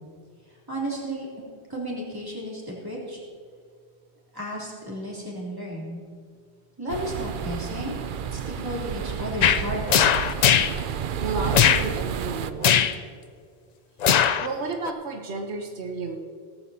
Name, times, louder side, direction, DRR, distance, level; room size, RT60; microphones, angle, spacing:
voice 1, 0.5-1.3 1.7-3.2 4.3-6.0 6.8-8.0 8.3-10.1, equal, 20° right, -5 dB, 3.4 m, -33 dB
sound 1, 6.9-12.5, right 8 dB, 60° right, 0.7 m, -31 dB
sound 2, 9.4-9.6 9.9-10.7 11.5-11.8 12.6-12.9 14.0-14.5 14.9-15.0, left 8 dB, 55° left, 0.5 m, -19 dB
voice 2, 11.2-12.9 14.4-16.2, right 3 dB, 85° right, 1 dB, 1.3 m, -32 dB
17.5 x 14.0 x 2.8 m, 2.1 s
omnidirectional pair, 1.1 m